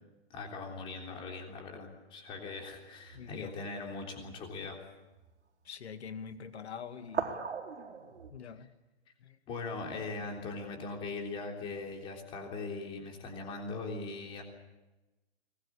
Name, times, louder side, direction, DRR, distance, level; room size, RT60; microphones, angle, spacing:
voice 1, 0.3-4.8 9.5-14.4, left 3 dB, 15° left, 2 dB, 3.5 m, -40 dB
sound 1, 2.6-3.4 4.0-4.3 5.1-5.3 7.0-8.3, right 6 dB, 85° right, 4.4 m, -39 dB
voice 2, 3.1-3.5 5.6-7.4 8.3-8.7 9.2-9.4, left 7 dB, 70° left, 8 dB, 2.4 m, -44 dB
24.0 x 20.5 x 8.8 m, 1.1 s
hypercardioid pair, 170°, 34 cm